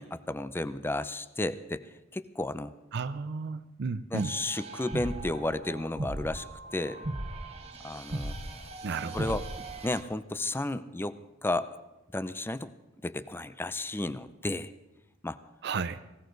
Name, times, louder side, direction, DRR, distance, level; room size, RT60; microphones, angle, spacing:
voice 1, 0.0-2.7 4.1-6.5 6.7-7.1 7.8-8.4 9.1-9.4 9.8-11.7 12.1-12.7 13.0-14.7 15.2-15.4, left 2 dB, 10° left, 13 dB, 0.5 m, -33 dB
voice 2, 2.9-4.3 8.8-9.4 15.6-16.0, right 4 dB, 60° right, 11 dB, 0.5 m, -33 dB
sound 1, 4.1-10.0, right 1 dB, 30° right, 1.2 m, -38 dB
19.0 x 18.0 x 3.9 m, 1.0 s
head